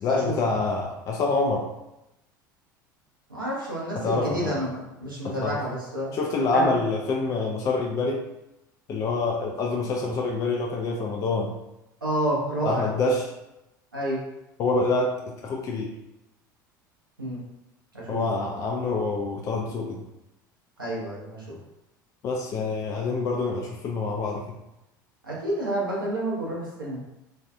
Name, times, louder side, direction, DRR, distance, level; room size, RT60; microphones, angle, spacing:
voice 1, 0.0-1.7 3.9-4.5 5.2-5.6 6.1-8.3 8.9-11.5 12.7-13.3 14.6-15.9 18.1-20.0 22.2-24.4, left 3 dB, 30° left, 0 dB, 0.3 m, -26 dB
voice 2, 3.3-6.2 6.5-6.7 12.0-12.9 13.9-14.2 17.2-17.4 17.9-18.2 20.8-21.6 25.2-27.0, right 1 dB, 85° right, -6 dB, 0.8 m, -29 dB
2.5 x 2.3 x 2.3 m, 0.92 s
figure-of-eight pair, 70°, 11 cm